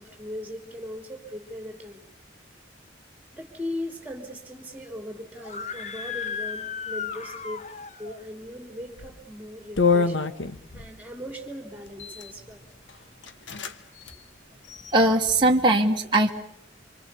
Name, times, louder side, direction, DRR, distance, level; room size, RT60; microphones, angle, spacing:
voice 1, 0.0-2.0 3.3-7.7 8.0-10.2 10.7-12.6 15.9-16.0, left 1 dB, 10° right, 4 dB, 3.3 m, -38 dB
Screaming, 5.4-8.2, left 6 dB, 35° left, 1.0 m, -35 dB
sound 1, 8.9-9.2 9.8-10.9 11.9-12.3 12.9-13.0 13.2-13.7 14.0-14.1 14.6-15.3, left 4 dB, 80° left, 1.3 m, -26 dB
voice 2, 14.9-16.3, right 1 dB, 25° right, 1 dB, 1.3 m, -20 dB
26.5 x 25.5 x 6.9 m, 0.67 s
head